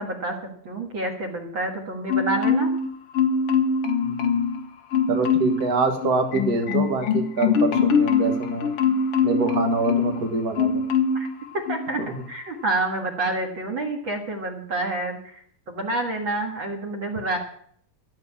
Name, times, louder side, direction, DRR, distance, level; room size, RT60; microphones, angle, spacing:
voice 1, 0.0-2.7 11.1-11.3 11.5-15.4 15.7-17.4, right 2 dB, 45° right, 2 dB, 1.8 m, -28 dB
Marimba xylophone, 2.1-2.9 3.1-4.6 4.9-5.6 6.0-10.2 10.6-11.3 11.7-11.9, left 5 dB, 65° left, 1.4 m, -22 dB
voice 2, 4.0-4.4 5.1-8.7 9.2-10.9 12.0-12.1, right 4 dB, 60° right, 5 dB, 0.9 m, -25 dB
13.5 x 7.3 x 8.6 m, 0.62 s
omnidirectional pair, 4.1 m